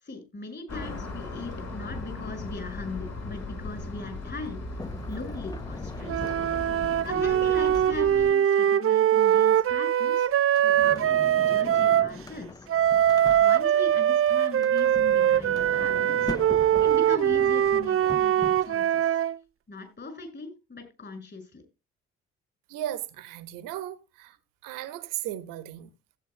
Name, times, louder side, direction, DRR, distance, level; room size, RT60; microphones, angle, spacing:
voice 1, 0.0-4.6 5.1-6.2 7.0-11.1 11.4-12.7 13.4-16.3 16.8-19.2 19.7-21.6, left 3 dB, 30° left, 6.2 m, -39 dB
sound 1, 0.7-8.3, left 2 dB, 50° left, 5.3 m, -37 dB
Sliding door, 4.8-8.3 10.4-13.9 14.5-18.9, left 2 dB, 10° left, 0.7 m, -41 dB
sound 2, 6.1-12.1 12.7-19.4, right 10 dB, 40° right, 0.7 m, -22 dB
voice 2, 22.7-24.4 24.6-25.9, right 12 dB, 70° right, 1.2 m, -36 dB
16.0 x 9.0 x 2.2 m
hypercardioid pair, 50°, 33 cm